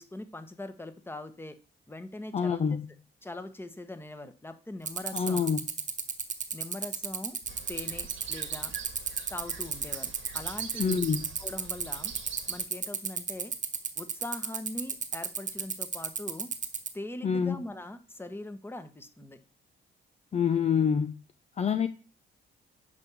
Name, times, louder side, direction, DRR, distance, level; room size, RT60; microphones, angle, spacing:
voice 1, 0.0-1.5 1.9-2.6 3.2-5.5 6.5-7.4 7.7-8.7 9.3-11.0 11.4-12.1 12.5-13.5 14.0-16.5 16.9-19.4, left 1 dB, 10° left, 1.2 m, -41 dB
voice 2, 2.3-2.9 5.1-5.6 10.8-11.3 17.2-17.6 20.3-21.2 21.6-21.9, left 6 dB, 35° left, 0.6 m, -26 dB
sound 1, 4.9-16.9, right 6 dB, 40° right, 1.4 m, -31 dB
sound 2, 7.5-12.6, right 7 dB, 75° right, 1.8 m, -45 dB
10.5 x 3.6 x 6.9 m
cardioid pair, 90°, 20 cm